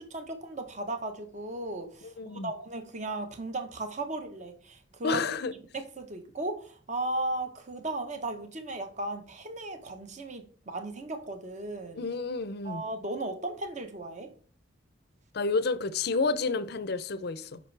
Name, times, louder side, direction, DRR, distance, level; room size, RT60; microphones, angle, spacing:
voice 1, 0.0-5.3 5.7-12.0 12.6-14.3, right 2 dB, 35° right, 1.0 m, -36 dB
voice 2, 2.2-2.5 5.0-5.5 12.0-12.8 15.3-17.6, left 4 dB, 55° left, 0.5 m, -30 dB
7.5 x 5.3 x 3.3 m
head